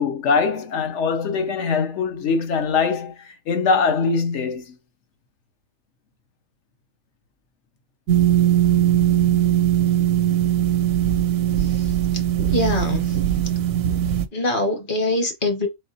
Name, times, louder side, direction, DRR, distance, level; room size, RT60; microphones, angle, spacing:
voice 1, 0.0-4.8, left 5 dB, 65° left, 1.1 m, -22 dB
sound 1, 8.1-14.3, right 11 dB, 80° right, 1.0 m, -20 dB
voice 2, 11.6-11.9 12.5-13.2 14.3-15.7, left 2 dB, 45° left, 1.1 m, -24 dB
4.1 x 3.6 x 2.7 m
omnidirectional pair, 1.4 m